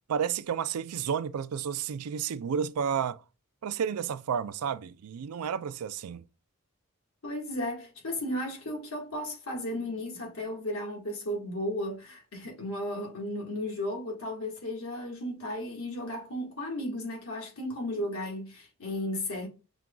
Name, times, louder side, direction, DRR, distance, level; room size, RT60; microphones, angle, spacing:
voice 1, 0.1-3.2 3.6-6.2, right 7 dB, 90° right, 0.4 m, -31 dB
voice 2, 7.2-19.5, left 1 dB, 80° left, 1.7 m, -34 dB
5.8 x 2.3 x 3.7 m
head